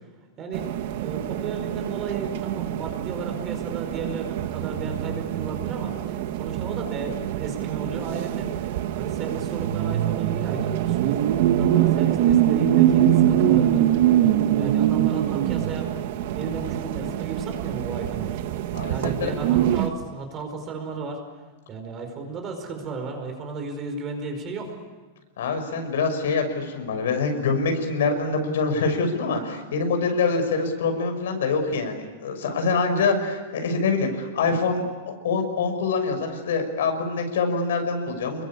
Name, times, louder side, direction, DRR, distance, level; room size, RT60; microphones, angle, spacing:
voice 1, 0.4-0.7 1.0-8.7 8.9-13.9 14.5-15.9 16.3-18.4 18.9-21.2 21.7-24.7, right 4 dB, 25° right, 4 dB, 4.9 m, -34 dB
sound 1, 0.5-19.9, right 11 dB, 50° right, 1.5 m, -24 dB
voice 2, 18.7-19.3 25.4-38.4, left 4 dB, 85° left, 5 dB, 6.3 m, -25 dB
29.0 x 22.0 x 8.8 m, 1.3 s
supercardioid pair, 170°, 0 cm